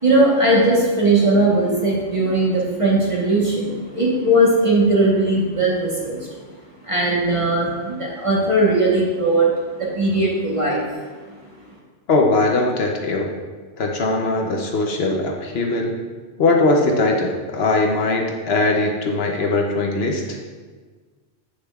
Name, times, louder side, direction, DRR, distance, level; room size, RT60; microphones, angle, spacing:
voice 1, 0.0-6.2 6.8-10.8, right 1 dB, 30° right, -4 dB, 1.1 m, -18 dB
voice 2, 12.1-13.3 13.8-16.0 16.4-20.4, left 2 dB, 65° left, 1 dB, 0.9 m, -20 dB
8.2 x 6.4 x 2.3 m, 1.5 s
omnidirectional pair, 1.2 m